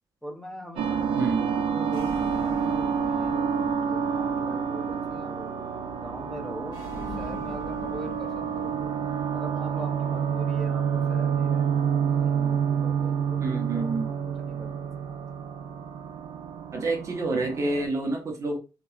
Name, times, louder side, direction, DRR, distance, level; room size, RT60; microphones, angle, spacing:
voice 1, 0.2-5.5 5.9-8.9 9.3-14.7 14.9-15.2, equal, 5° left, 0.7 m, -42 dB
sound 1, 0.8-17.9, right 7 dB, 85° right, 0.4 m, -28 dB
sound 2, 1.8-17.9, left 1 dB, 65° left, 1.6 m, -44 dB
voice 2, 13.4-14.1 16.7-18.6, right 3 dB, 40° right, 0.6 m, -28 dB
2.7 x 2.2 x 2.4 m
cardioid pair, 120°, 8 cm